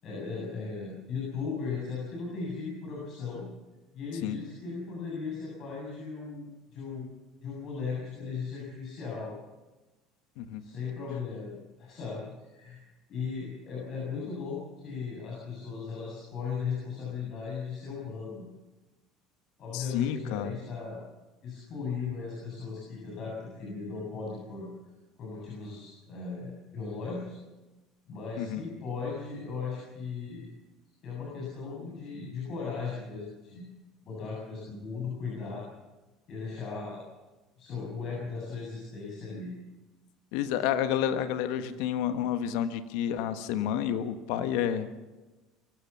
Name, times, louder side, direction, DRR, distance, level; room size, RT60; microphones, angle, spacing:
voice 1, 0.0-3.5 3.9-7.1 7.4-9.3 10.6-12.8 13.1-18.4 19.6-21.0 21.4-24.7 25.2-27.4 28.1-30.5 31.0-33.6 34.1-35.7 36.3-37.0 37.6-39.5, left 5 dB, 55° left, -4 dB, 7.7 m, -37 dB
voice 2, 19.7-20.5 28.4-28.7 40.3-44.9, left 10 dB, 70° left, 10 dB, 1.5 m, -30 dB
24.0 x 15.5 x 7.1 m, 1.1 s
hypercardioid pair, 75°, 0 cm